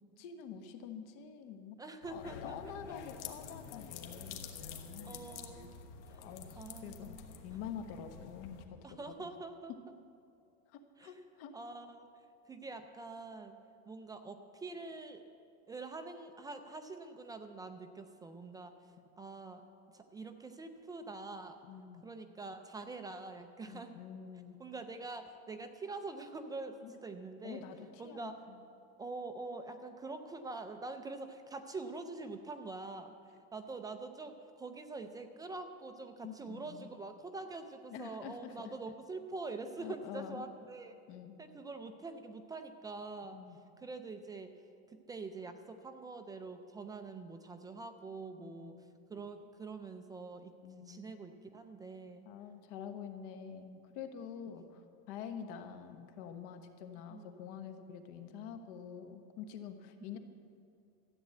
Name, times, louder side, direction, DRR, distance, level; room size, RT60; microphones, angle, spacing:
voice 1, 0.0-1.8 2.1-5.3 6.2-9.3 9.7-9.8 10.7-11.5 21.6-22.1 23.7-24.6 26.8-26.9 27.4-28.3 36.2-36.9 37.9-38.7 39.8-40.5 41.1-41.4 43.3-43.6 48.4-48.8 50.6-51.2 52.2-60.2, left 7 dB, 60° left, 7 dB, 1.2 m, -47 dB
voice 2, 1.8-2.6 5.0-5.8 6.1-6.2 6.6-7.5 8.8-9.7 11.0-11.2 11.5-12.1 12.5-13.5 13.9-15.2 15.7-18.7 19.2-21.6 22.0-24.0 24.6-27.6 28.0-28.4 29.0-33.1 33.5-41.0 41.4-43.4 43.8-44.5 44.9-48.7 49.1-52.3 57.1-57.7, right 3 dB, 10° right, 7 dB, 0.3 m, -45 dB
water splash running, 2.0-8.6, left 7 dB, 85° left, 1.4 m, -48 dB
13.5 x 9.0 x 7.9 m, 2.5 s
cardioid pair, 155°, 34 cm